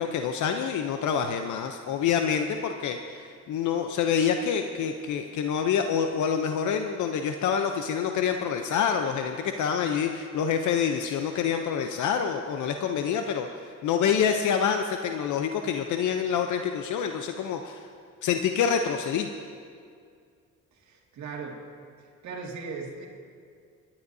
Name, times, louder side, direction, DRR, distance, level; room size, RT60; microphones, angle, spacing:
voice 1, 0.0-13.5 13.8-17.8 18.2-19.3, left 7 dB, 75° left, 5 dB, 0.7 m, -27 dB
voice 2, 20.7-21.6 22.0-23.1, right 4 dB, 70° right, -1 dB, 2.2 m, -38 dB
26.5 x 11.5 x 2.7 m, 2.2 s
cardioid pair, 90°, 30 cm